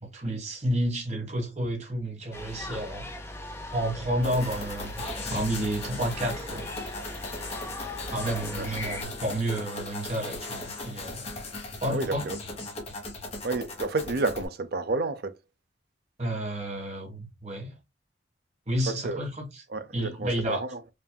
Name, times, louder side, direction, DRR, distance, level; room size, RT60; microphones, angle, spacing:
voice 1, 0.0-3.1 3.7-5.0 5.3-6.8 8.1-11.2 11.8-12.3 16.2-17.7 18.7-19.6 19.9-20.6, right 1 dB, 40° right, 1.6 m, -30 dB
sound 1, 2.3-9.0, left 1 dB, 15° left, 0.7 m, -39 dB
sound 2, 4.2-14.5, left 2 dB, 40° left, 1.4 m, -38 dB
voice 2, 11.9-12.4 13.4-15.3 19.0-19.2 19.7-20.8, right 3 dB, 60° right, 0.5 m, -30 dB
5.4 x 2.5 x 2.3 m
head